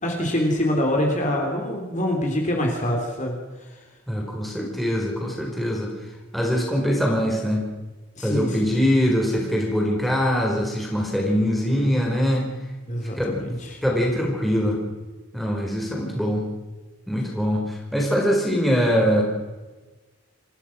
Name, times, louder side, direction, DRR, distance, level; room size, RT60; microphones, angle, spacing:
voice 1, 0.0-3.3 8.2-8.7 12.9-13.8, left 1 dB, 35° left, 0 dB, 3.5 m, -25 dB
voice 2, 4.1-5.9 6.3-7.6 8.2-12.5 13.1-13.3 13.8-14.8 15.3-16.4 17.1-19.2, equal, ahead, -2 dB, 4.5 m, -23 dB
27.0 x 16.0 x 6.1 m, 1.2 s
head